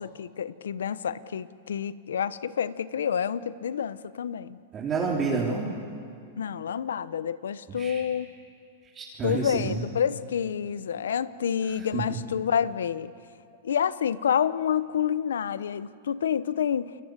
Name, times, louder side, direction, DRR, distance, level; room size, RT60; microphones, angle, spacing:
voice 1, 0.0-4.6 6.4-8.3 9.2-13.1 13.6-17.0, left 8 dB, 85° left, 16 dB, 0.9 m, -28 dB
voice 2, 4.7-5.7 7.8-8.0 8.8-9.8 11.7-12.2, right 4 dB, 25° right, -5 dB, 4.1 m, -29 dB
29.5 x 21.5 x 8.2 m, 2.4 s
hypercardioid pair, 120°, 0 cm